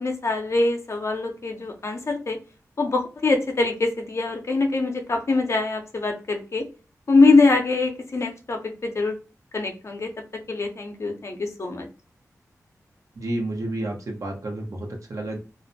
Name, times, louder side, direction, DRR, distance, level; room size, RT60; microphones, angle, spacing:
voice 1, 0.0-2.4 2.8-6.6 7.1-9.1 9.5-10.1 10.5-11.9, left 3 dB, 50° left, 3 dB, 0.6 m, -23 dB
voice 2, 13.1-15.4, right 1 dB, 60° right, 1 dB, 0.8 m, -30 dB
2.4 x 2.1 x 2.6 m, 0.33 s
cardioid pair, 55°, 6 cm